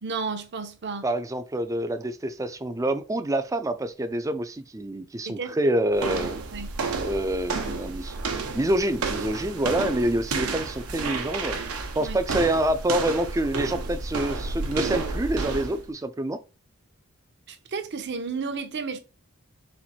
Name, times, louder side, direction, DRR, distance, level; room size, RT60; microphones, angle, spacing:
voice 1, 0.0-1.0 5.3-5.8 6.5-6.7 12.0-12.2 17.5-19.0, right 4 dB, 50° right, 0.7 m, -32 dB
voice 2, 1.0-6.4 7.0-8.1 8.5-11.5 12.0-16.4, right 1 dB, 15° right, 0.4 m, -27 dB
sound 1, 5.9-15.9, right 4 dB, 80° right, 0.9 m, -31 dB
4.3 x 2.5 x 4.2 m
head